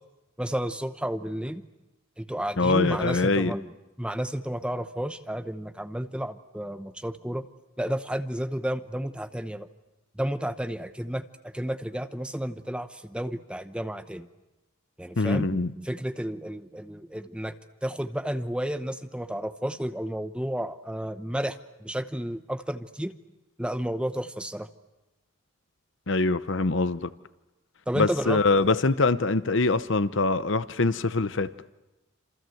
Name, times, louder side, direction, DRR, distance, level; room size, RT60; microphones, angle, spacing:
voice 1, 0.4-1.6 2.2-3.7 4.0-7.5 7.8-9.7 10.2-14.3 15.0-17.5 17.8-23.1 23.6-24.7 27.9-28.8, equal, 5° right, 0.9 m, -32 dB
voice 2, 2.6-3.5 15.2-15.7 26.1-27.1 27.9-31.5, left 3 dB, 65° left, 0.9 m, -24 dB
28.0 x 27.0 x 7.9 m
head